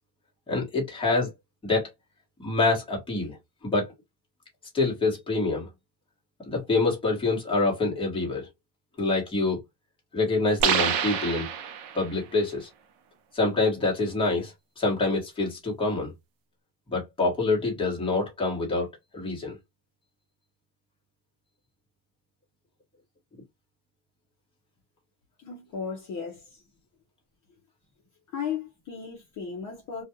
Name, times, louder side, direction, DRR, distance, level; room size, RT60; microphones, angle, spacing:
voice 1, 0.5-1.3 1.6-1.9 2.4-3.4 3.6-3.9 4.7-5.7 6.5-8.5 9.0-9.6 10.1-11.5 11.9-12.7 13.3-16.1 16.9-18.9 19.1-19.5, left 3 dB, 10° left, 1.1 m, -26 dB
sound 1, 10.6-12.2, right 8 dB, 50° right, 0.7 m, -27 dB
voice 2, 25.4-26.6 28.3-30.0, left 6 dB, 35° left, 0.8 m, -35 dB
2.4 x 2.4 x 2.8 m
cardioid pair, 145°, 48 cm